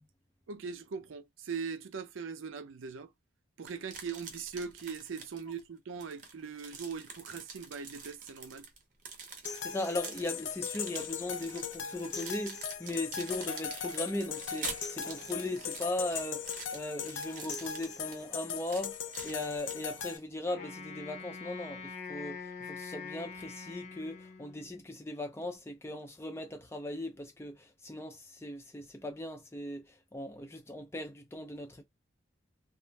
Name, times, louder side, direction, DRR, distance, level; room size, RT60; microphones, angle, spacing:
voice 1, 0.5-3.1 3.6-8.7, right 5 dB, 85° right, 0.5 m, -40 dB
sound 1, 3.7-5.6 6.0-20.2, right 5 dB, 40° right, 0.7 m, -46 dB
sound 2, 9.4-20.2, left 7 dB, 80° left, 0.5 m, -39 dB
voice 2, 9.6-19.0 19.2-29.8 30.1-31.8, left 1 dB, 15° left, 0.4 m, -38 dB
Wind instrument woodwind instrument, 20.4-24.8, left 5 dB, 35° left, 0.7 m, -44 dB
2.4 x 2.0 x 3.2 m
head